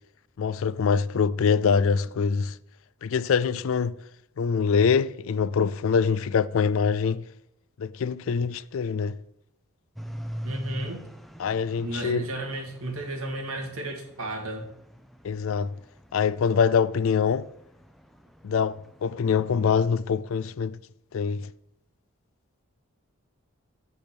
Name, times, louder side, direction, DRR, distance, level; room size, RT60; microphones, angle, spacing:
voice 1, 0.4-2.6 3.0-4.0 4.4-7.3 7.8-9.2 11.4-12.2 15.2-15.8 16.1-17.5 18.4-20.8 21.1-21.5, left 6 dB, 65° left, 0.4 m, -24 dB
sound 1, 10.0-19.9, equal, ahead, 0.5 m, -43 dB
voice 2, 10.4-11.0 11.8-14.7, right 1 dB, 75° right, 2.2 m, -33 dB
8.5 x 5.5 x 6.0 m
head